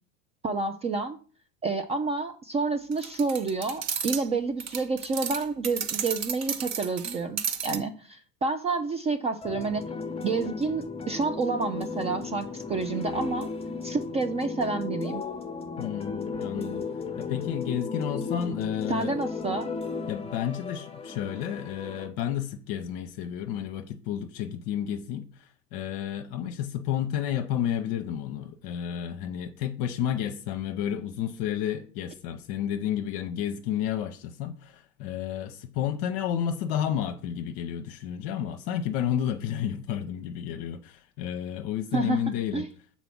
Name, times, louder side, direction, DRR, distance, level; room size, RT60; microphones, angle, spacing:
voice 1, 0.4-1.2 1.6-9.8 10.2-13.5 13.8-15.2 18.9-19.7 41.9-42.2 42.5-42.7, right 4 dB, 15° right, 0.3 m, -29 dB
sound 1, 2.9-4.3 4.6-7.8, right 7 dB, 35° right, 0.9 m, -32 dB
sound 2, 9.4-22.1, left 4 dB, 15° left, 0.8 m, -35 dB
voice 2, 15.8-16.8 17.2-19.2 20.1-42.6, left 10 dB, 50° left, 0.8 m, -31 dB
6.8 x 4.3 x 5.9 m
hypercardioid pair, 80°, 46 cm